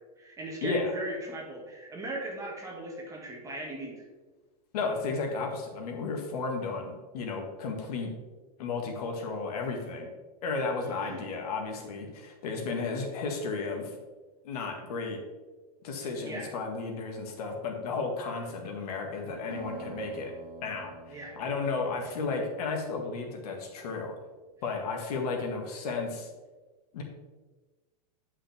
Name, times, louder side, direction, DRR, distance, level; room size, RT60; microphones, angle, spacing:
voice 1, 0.0-3.9 10.8-11.2 16.2-16.5 18.3-18.4 21.1-21.4, right 1 dB, 15° right, -1 dB, 1.8 m, -38 dB
voice 2, 0.6-0.9 4.7-8.1 8.6-10.1 10.4-14.0 14.4-15.2 15.8-20.3 20.6-24.1 24.6-26.3 26.9-27.0, left 4 dB, 70° left, 2 dB, 1.7 m, -33 dB
sound 1, 19.5-23.8, right 3 dB, 80° right, 1.6 m, -47 dB
10.0 x 5.6 x 3.4 m, 1.2 s
supercardioid pair, 140°, 20 cm